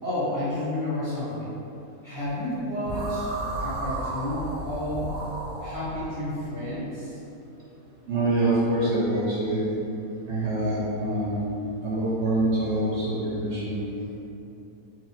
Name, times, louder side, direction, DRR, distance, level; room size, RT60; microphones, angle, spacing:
voice 1, 0.0-1.5 2.0-5.1 5.6-7.2, left 1 dB, 15° left, -11 dB, 1.1 m, -31 dB
sound 1, 2.8-6.1, right 2 dB, 85° right, 1.2 m, -33 dB
voice 2, 8.1-9.7 10.3-11.4 11.8-13.8, right 1 dB, 60° right, -7 dB, 0.9 m, -25 dB
4.2 x 2.4 x 4.2 m, 2.9 s
omnidirectional pair, 1.5 m